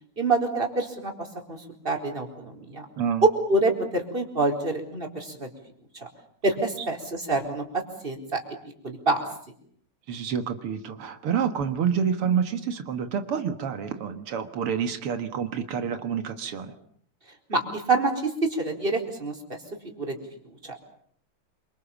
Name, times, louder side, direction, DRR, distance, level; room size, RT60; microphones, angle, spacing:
voice 1, 0.2-2.9 3.2-5.5 5.9-6.1 6.4-8.4 8.8-9.2 17.5-19.6 20.0-20.2 20.4-20.8, right 3 dB, 25° right, 3 dB, 4.6 m, -26 dB
voice 2, 10.1-16.7, right 7 dB, 85° right, 8 dB, 2.5 m, -28 dB
28.0 x 25.5 x 7.2 m, 0.62 s
omnidirectional pair, 2.4 m